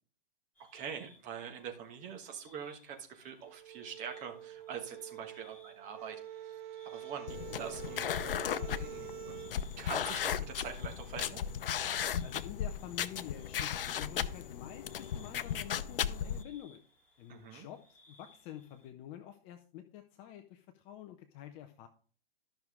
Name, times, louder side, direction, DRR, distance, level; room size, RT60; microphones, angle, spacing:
sound 1, 0.5-18.9, left 2 dB, 5° left, 3.3 m, -65 dB
voice 1, 0.6-6.6 6.8-9.4 9.8-11.4 17.3-17.7, right 7 dB, 25° right, 4 dB, 1.4 m, -44 dB
sound 2, 3.4-9.6, right 11 dB, 55° right, 0.4 m, -46 dB
sound 3, 7.3-16.4, left 9 dB, 65° left, 0.7 m, -36 dB
voice 2, 12.2-16.8 17.2-21.9, left 11 dB, 20° left, 7 dB, 0.4 m, -48 dB
13.0 x 6.0 x 3.6 m, 0.43 s
hypercardioid pair, 135°, 30 cm